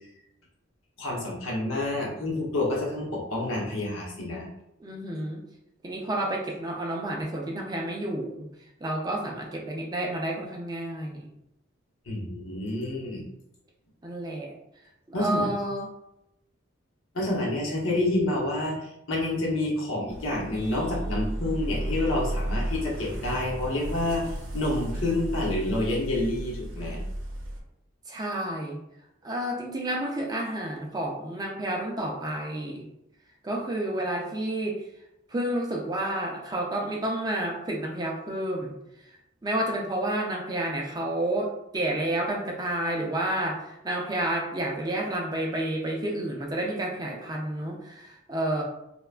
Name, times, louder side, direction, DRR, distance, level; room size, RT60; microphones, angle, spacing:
voice 1, 1.0-4.5 12.1-13.2 15.1-15.5 17.1-24.2 24.5-27.0, left 1 dB, 80° left, -3 dB, 0.8 m, -28 dB
voice 2, 4.8-5.4 5.8-8.5 8.8-11.3 14.0-14.5 15.2-15.9 28.1-28.8 29.2-32.9 33.4-34.8 35.3-38.7 39.4-48.6, right 1 dB, 20° right, -1 dB, 0.4 m, -30 dB
sound 1, 20.1-27.6, right 1 dB, 70° right, 0.6 m, -33 dB
3.2 x 2.2 x 2.4 m, 0.84 s
head